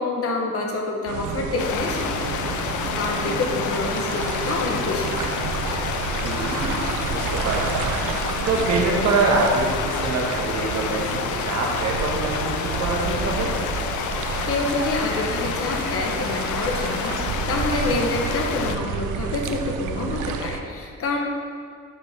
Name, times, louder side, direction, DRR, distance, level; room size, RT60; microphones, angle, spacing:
voice 1, 0.0-2.4 3.0-5.5 14.5-21.2, left 3 dB, 50° left, 1 dB, 1.1 m, -27 dB
sound 1, 1.1-20.6, right 6 dB, 90° right, 0.6 m, -30 dB
sound 2, 1.6-18.8, left 7 dB, 80° left, 0.6 m, -29 dB
voice 2, 6.2-7.8 8.4-13.5, right 3 dB, 60° right, -2 dB, 1.5 m, -25 dB
10.5 x 5.3 x 3.5 m, 2.1 s
cardioid pair, 165°, 29 cm